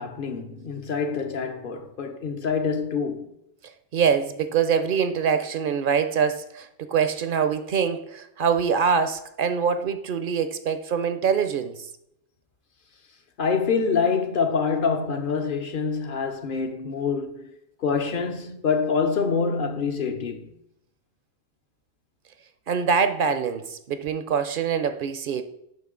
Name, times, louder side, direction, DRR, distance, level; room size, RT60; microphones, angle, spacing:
voice 1, 0.0-3.3 13.4-17.5 17.8-20.5, left 5 dB, 60° left, 0.9 m, -26 dB
voice 2, 3.9-11.9 22.7-25.4, right 6 dB, 60° right, 0.7 m, -24 dB
11.0 x 3.8 x 3.7 m
omnidirectional pair, 1.0 m